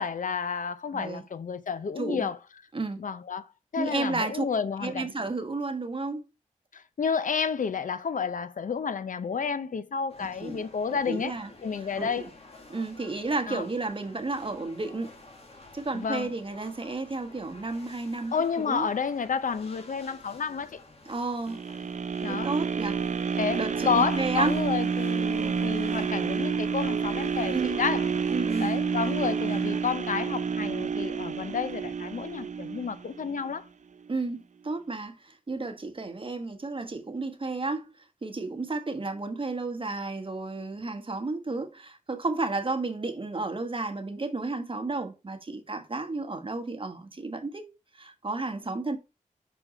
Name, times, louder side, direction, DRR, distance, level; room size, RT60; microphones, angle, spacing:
voice 1, 0.0-2.4 3.0-3.5 3.7-5.1 6.7-11.4 11.6-12.3 13.5-13.6 15.9-16.3 18.3-20.8 22.2-22.5 23.4-28.1 28.6-33.6, left 6 dB, 70° left, 0.6 m, -30 dB
voice 2, 2.0-2.3 2.7-3.0 3.8-4.4 4.8-6.2 10.4-10.6 10.9-11.5 11.8-12.3 12.7-15.2 15.7-18.9 21.1-21.6 22.3-23.0 23.3-24.5 27.5-27.8 28.3-28.8 34.1-37.9 38.2-47.7 47.9-49.0, right 3 dB, 40° right, 1.2 m, -32 dB
sound 1, 10.1-29.8, left 2 dB, 45° left, 1.8 m, -51 dB
sound 2, 21.5-33.6 34.1-34.2, right 6 dB, 60° right, 0.5 m, -29 dB
6.0 x 4.6 x 5.0 m
wide cardioid pair, 70°, 14 cm